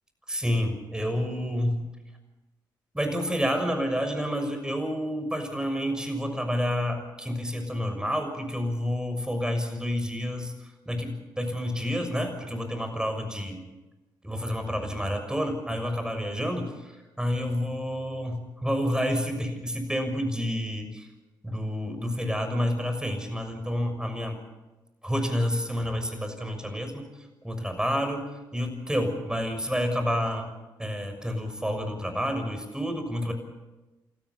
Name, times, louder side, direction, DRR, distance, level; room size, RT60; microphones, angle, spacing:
voice 1, 0.3-1.8 2.9-13.6 14.2-21.1 21.4-24.4 25.0-27.1 27.4-28.2 28.5-30.5 30.8-33.3, equal, 5° right, 6 dB, 6.5 m, -29 dB
29.0 x 14.0 x 7.1 m, 1.1 s
hypercardioid pair, 40°, 11 cm